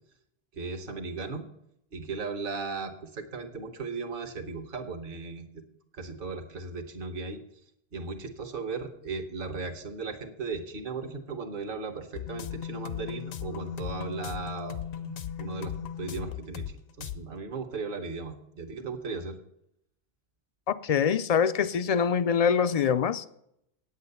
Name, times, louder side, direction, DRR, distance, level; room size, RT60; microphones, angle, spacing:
voice 1, 0.5-1.4 1.9-5.6 5.9-7.4 7.9-19.4, right 4 dB, 55° right, 5 dB, 1.3 m, -37 dB
sound 1, 12.1-16.7 17.0-17.2, left 9 dB, 65° left, 0.9 m, -37 dB
voice 2, 20.7-23.3, left 7 dB, 50° left, 13 dB, 0.4 m, -24 dB
8.9 x 8.1 x 6.7 m, 0.74 s
omnidirectional pair, 1.1 m